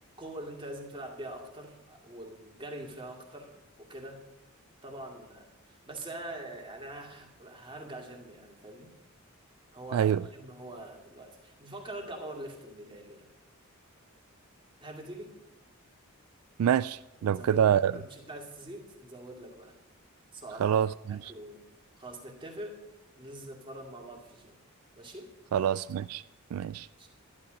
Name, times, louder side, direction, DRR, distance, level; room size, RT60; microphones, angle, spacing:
voice 1, 0.2-4.3 4.8-9.0 9.7-13.3 14.8-15.4 17.2-19.7 20.3-20.8 21.1-21.6 22.0-22.8 23.2-24.6 25.0-25.3 27.0-27.1, right 1 dB, 25° right, 2.3 m, -44 dB
voice 2, 9.9-10.2 16.6-17.9 20.6-21.3 25.5-26.2 26.5-26.9, right 9 dB, 80° right, 0.3 m, -26 dB
12.0 x 11.5 x 5.2 m
head